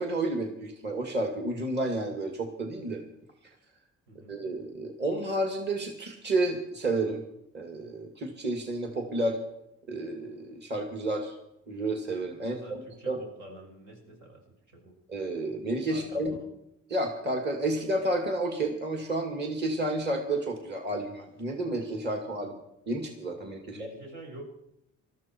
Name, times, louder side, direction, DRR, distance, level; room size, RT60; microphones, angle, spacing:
voice 1, 0.0-3.0 4.3-7.2 7.5-9.4 9.9-11.3 11.7-12.8 13.1-13.2 15.1-16.3 16.9-22.5 22.9-23.9, right 2 dB, 35° right, 3 dB, 2.5 m, -31 dB
voice 2, 12.4-14.4 14.7-14.9 15.9-16.5 22.4-22.6 23.7-24.4, right 1 dB, 80° right, 0 dB, 7.0 m, -47 dB
19.5 x 13.5 x 4.6 m, 0.80 s
cardioid pair, 90°, 30 cm